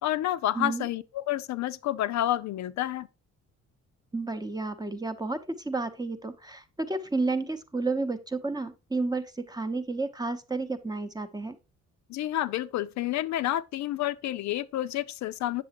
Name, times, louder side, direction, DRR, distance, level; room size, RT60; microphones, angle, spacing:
voice 1, 0.0-3.1 12.1-15.6, left 13 dB, 65° left, 0.4 m, -29 dB
voice 2, 0.6-0.9 4.1-11.6, right 3 dB, 15° right, 0.7 m, -31 dB
7.5 x 6.6 x 2.8 m
cardioid pair, 90°, 30 cm